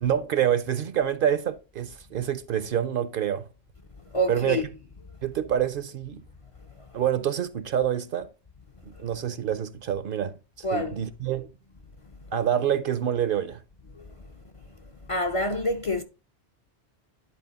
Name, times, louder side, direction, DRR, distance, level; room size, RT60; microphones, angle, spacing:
voice 1, 0.0-3.5 4.3-4.6 5.2-6.2 6.9-8.3 9.0-11.5 12.3-13.6, right 10 dB, 60° right, 0.7 m, -27 dB
voice 2, 4.1-4.6 10.6-10.9 15.1-16.0, equal, 40° left, 0.5 m, -26 dB
10.0 x 4.1 x 4.0 m
omnidirectional pair, 1.1 m